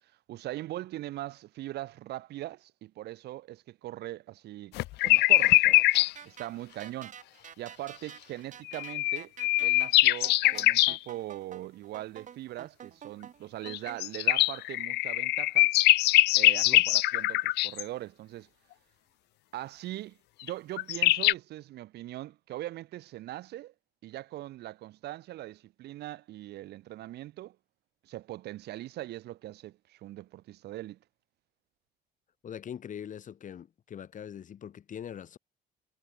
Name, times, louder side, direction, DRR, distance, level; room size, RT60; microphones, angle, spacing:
voice 1, 0.3-5.8 6.3-7.2 7.6-9.3 9.6-15.7 16.4-18.5 19.5-23.7 24.0-27.6 28.0-31.0, right 15 dB, 75° right, 7.1 m, -41 dB
sound 1, 4.8-6.1 8.7-11.0 13.7-17.8 20.5-20.6 20.8-21.3, left 19 dB, 85° left, 1.3 m, -23 dB
sound 2, 5.4-14.0, right 8 dB, 50° right, 7.6 m, -49 dB
voice 2, 32.4-35.4, left 9 dB, 50° left, 6.5 m, -42 dB
cardioid pair, 110°, 17 cm